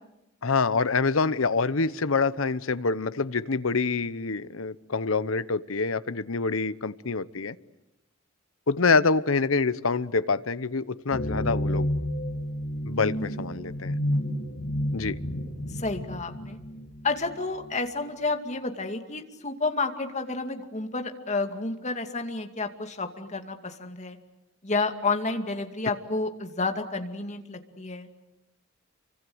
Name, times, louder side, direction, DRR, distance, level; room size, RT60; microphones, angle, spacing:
voice 1, 0.4-7.6 8.7-11.9 12.8-14.0 14.9-15.2, left 4 dB, 75° left, 15 dB, 1.0 m, -26 dB
sound 1, 11.1-17.7, equal, 55° left, 4.0 m, -30 dB
voice 2, 15.7-16.6 17.0-24.2 24.6-28.1, left 3 dB, 35° left, 5 dB, 2.4 m, -30 dB
29.5 x 25.0 x 8.0 m, 0.92 s
head